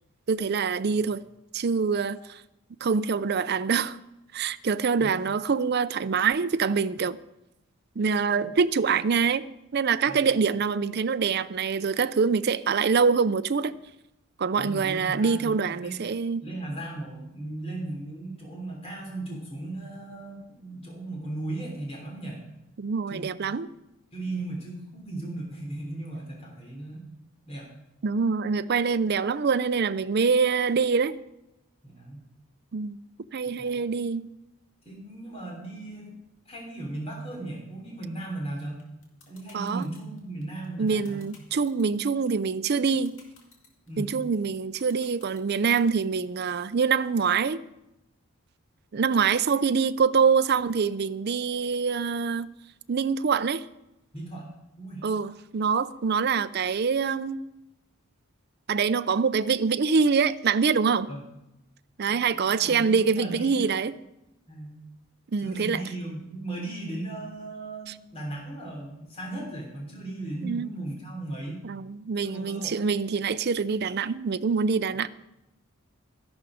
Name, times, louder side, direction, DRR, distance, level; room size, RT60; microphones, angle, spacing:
voice 1, 0.3-1.2 1.5-2.4 2.8-4.0 4.3-7.2 8.0-9.4 9.7-13.7 14.4-16.4 22.8-23.7 28.0-31.2 32.7-33.0 33.3-34.3 39.5-39.9 40.8-43.1 44.0-47.6 48.9-52.5 52.9-53.6 55.0-57.4 58.7-61.1 62.0-64.0 65.3-65.8 70.4-70.7 71.6-75.1, right 5 dB, 50° right, 0.4 m, -25 dB
voice 2, 14.6-16.0 16.4-22.4 23.1-23.4 24.1-27.0 27.5-27.7 31.8-32.2 33.5-33.8 34.9-36.1 36.5-38.8 39.3-41.3 43.9-44.1 54.1-54.5 54.8-55.1 61.1-61.2 62.1-63.7 64.5-64.8 65.4-71.6 72.2-72.8, right 2 dB, 25° left, 3.3 m, -37 dB
sound 1, 38.8-45.8, left 4 dB, 60° left, 2.7 m, -54 dB
13.0 x 11.5 x 5.0 m
head